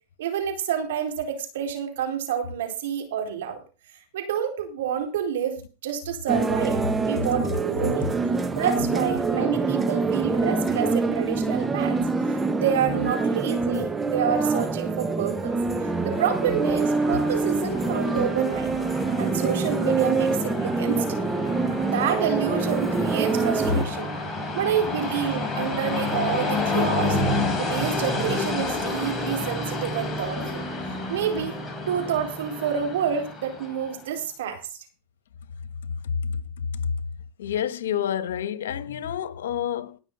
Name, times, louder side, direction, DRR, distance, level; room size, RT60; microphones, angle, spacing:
voice 1, 0.2-3.6 4.1-8.1 8.5-12.0 12.3-15.5 16.0-18.7 19.2-21.2 21.8-24.1 24.5-27.2 27.6-30.6 31.1-31.6 31.9-34.6, right 8 dB, 80° right, 4.4 m, -28 dB
sound 1, 6.3-23.8, right 3 dB, 15° right, 1.2 m, -25 dB
Train, 15.4-34.0, left 2 dB, 10° left, 5.1 m, -30 dB
voice 2, 36.0-36.9 37.4-40.0, left 8 dB, 85° left, 1.3 m, -29 dB
18.5 x 6.3 x 5.6 m
hypercardioid pair, 110°, 0 cm